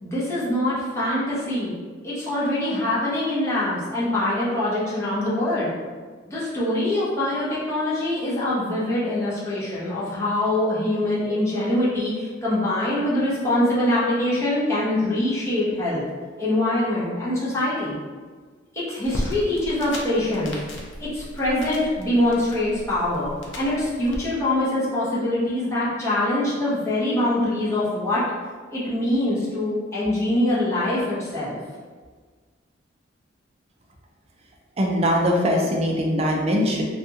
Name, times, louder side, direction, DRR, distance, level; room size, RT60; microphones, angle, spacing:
voice 1, 0.0-1.7 2.0-5.7 6.3-16.0 16.4-17.9 18.7-20.5 21.0-23.3 23.6-28.2 28.7-31.6, left 1 dB, 15° left, -9 dB, 0.8 m, -24 dB
sound 1, 19.0-24.2, equal, 65° left, 0.5 m, -35 dB
voice 2, 34.8-36.8, equal, 30° right, -1 dB, 0.4 m, -21 dB
2.6 x 2.3 x 2.7 m, 1.5 s
head